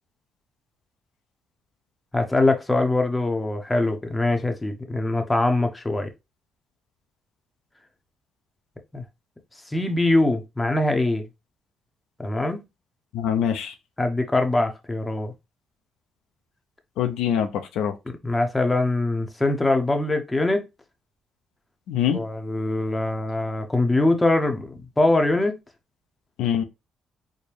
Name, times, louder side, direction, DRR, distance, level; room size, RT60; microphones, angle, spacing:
voice 1, 2.1-6.1 8.9-9.0 9.7-11.2 12.2-12.6 14.0-15.3 18.1-20.7 22.1-25.6, left 2 dB, 15° left, 0.7 m, -23 dB
voice 2, 13.1-13.7 17.0-17.9 21.9-22.2 26.4-26.6, left 9 dB, 90° left, 0.5 m, -24 dB
4.4 x 2.2 x 3.2 m
cardioid pair, 90°, 0 cm